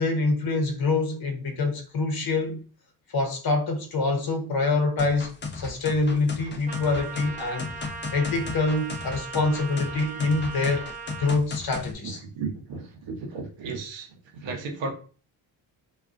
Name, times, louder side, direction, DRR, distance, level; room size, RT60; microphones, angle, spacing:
voice 1, 0.0-2.6 3.1-7.7 8.1-10.9 11.2-12.2, left 3 dB, 45° left, 0.9 m, -25 dB
sound 1, 5.0-11.9, left 4 dB, 25° left, 0.5 m, -35 dB
Trumpet, 6.7-11.3, right 4 dB, 15° right, 0.7 m, -39 dB
voice 2, 12.3-14.1 14.4-14.9, right 4 dB, 60° right, 1.0 m, -34 dB
2.4 x 2.4 x 2.4 m
supercardioid pair, 55°, 49 cm